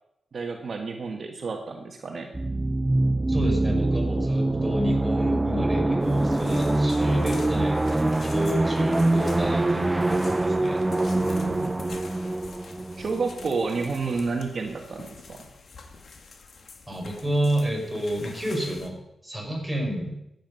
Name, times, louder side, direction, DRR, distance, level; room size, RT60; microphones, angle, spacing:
voice 1, 0.3-2.3 11.1-11.7 13.0-15.4, right 4 dB, 55° right, 2 dB, 1.5 m, -30 dB
sound 1, 2.3-13.9, right 2 dB, 20° right, 0.5 m, -24 dB
voice 2, 3.3-10.8 16.9-20.1, equal, ahead, -1 dB, 5.6 m, -30 dB
sound 2, 6.0-18.9, left 4 dB, 65° left, 1.9 m, -46 dB
14.5 x 9.5 x 5.5 m, 0.84 s
cardioid pair, 85°, 0 cm